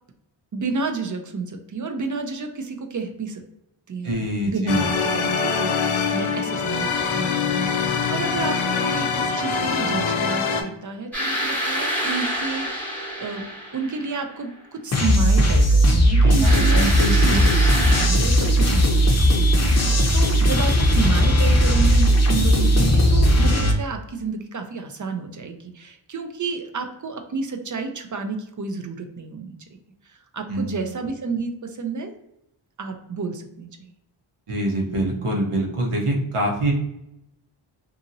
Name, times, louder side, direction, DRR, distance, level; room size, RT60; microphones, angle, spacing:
voice 1, 0.5-3.4 3.9-4.8 5.1-13.5 13.7-16.9 17.1-29.5 30.0-32.1 32.8-33.9, right 4 dB, 40° right, 6 dB, 0.4 m, -31 dB
voice 2, 4.0-4.9 16.2-17.5 30.5-30.8 34.5-36.7, right 1 dB, 85° right, 0 dB, 1.0 m, -25 dB
sound 1, 4.7-10.6, left 5 dB, 75° left, 0.6 m, -24 dB
sound 2, 11.1-14.4 16.4-18.1, equal, 5° left, 1.0 m, -27 dB
sound 3, 14.9-23.7, equal, 35° left, 0.6 m, -17 dB
2.7 x 2.7 x 2.6 m, 0.81 s
wide cardioid pair, 80°, 49 cm